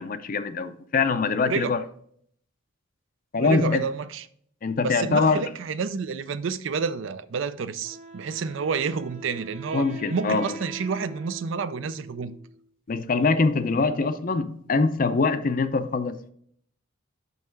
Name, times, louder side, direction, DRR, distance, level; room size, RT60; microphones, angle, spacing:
voice 1, 0.0-1.8 3.3-3.8 4.6-5.5 9.7-10.6 12.9-16.3, left 4 dB, 40° left, 0.5 m, -24 dB
voice 2, 1.4-1.7 3.4-4.2 4.8-12.4, right 5 dB, 65° right, 0.4 m, -29 dB
Wind instrument woodwind instrument, 7.8-12.6, right 2 dB, 30° right, 1.1 m, -43 dB
5.5 x 5.5 x 4.5 m
head